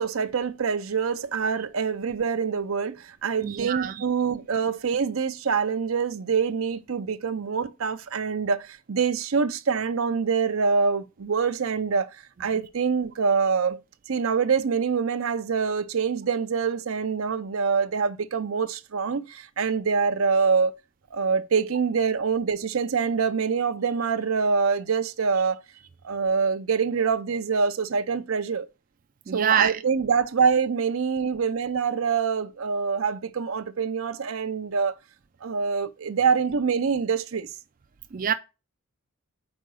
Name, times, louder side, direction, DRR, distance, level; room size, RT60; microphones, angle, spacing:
voice 1, 0.0-13.8 14.1-20.7 21.1-25.6 26.0-28.7 29.3-34.9 35.4-37.5, right 5 dB, 80° right, 0.6 m, -25 dB
voice 2, 3.4-4.0 29.3-29.8 38.1-38.3, right 8 dB, 40° right, 0.4 m, -25 dB
5.2 x 4.6 x 6.3 m
head